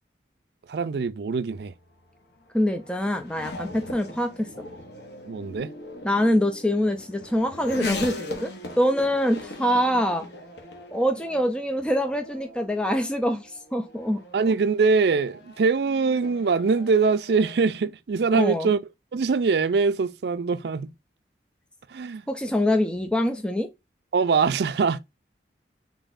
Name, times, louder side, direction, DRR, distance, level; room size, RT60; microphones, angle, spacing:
voice 1, 0.7-1.7 5.2-5.7 14.3-18.8 19.1-20.9 21.9-22.3 24.1-25.0, right 4 dB, 70° right, 0.4 m, -23 dB
Race car auto racing / Accelerating revving vroom, 1.4-17.6, left 2 dB, 70° left, 1.0 m, -40 dB
voice 2, 2.5-4.5 6.0-8.5 8.8-10.3 10.9-14.2 18.4-18.7 22.3-23.7, equal, 5° left, 0.4 m, -24 dB
3.9 x 3.6 x 2.5 m
head